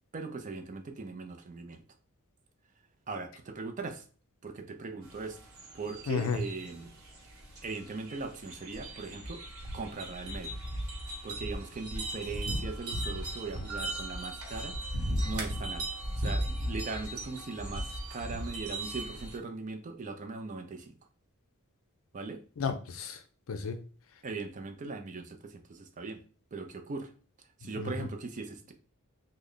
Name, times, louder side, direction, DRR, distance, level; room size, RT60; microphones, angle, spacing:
voice 1, 0.1-1.8 3.1-4.0 4.4-5.4 5.7-6.9 7.6-9.4 9.7-10.6 11.2-20.9 22.1-22.4 24.2-26.2 26.5-27.1 27.6-28.7, right 3 dB, 35° right, 5 dB, 0.4 m, -40 dB
sound 1, 5.0-19.4, right 1 dB, 80° right, 1.0 m, -37 dB
voice 2, 6.1-6.4 22.6-23.8 24.1-24.2 27.6-28.1, left 5 dB, 65° left, 7 dB, 0.5 m, -34 dB
3.2 x 2.1 x 3.7 m, 0.39 s
head